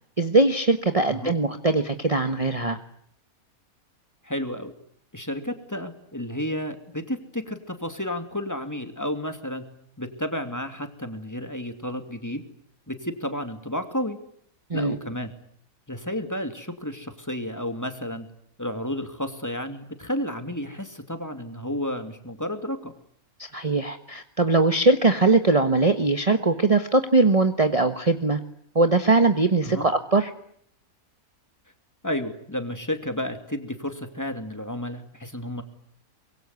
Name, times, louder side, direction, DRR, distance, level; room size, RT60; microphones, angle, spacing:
voice 1, 0.2-2.8 14.7-15.0 23.4-28.4 28.7-30.3, right 3 dB, 25° right, 8 dB, 1.3 m, -21 dB
voice 2, 4.2-4.7 5.1-9.6 10.0-12.4 12.9-14.2 14.7-15.3 15.9-18.3 18.6-22.9 29.6-29.9 32.0-35.6, left 1 dB, 10° left, 7 dB, 2.7 m, -31 dB
24.5 x 23.0 x 9.7 m, 0.66 s
omnidirectional pair, 1.5 m